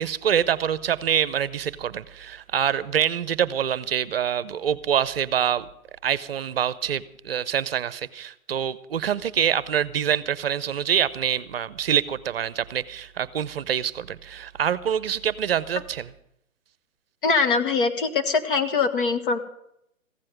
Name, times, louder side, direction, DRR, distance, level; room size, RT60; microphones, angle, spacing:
voice 1, 0.0-5.6 6.0-16.1, right 9 dB, 45° right, 17 dB, 0.8 m, -25 dB
voice 2, 17.2-19.4, left 4 dB, 40° left, 6 dB, 1.4 m, -22 dB
15.5 x 7.7 x 9.0 m, 0.76 s
hypercardioid pair, 145°, 42 cm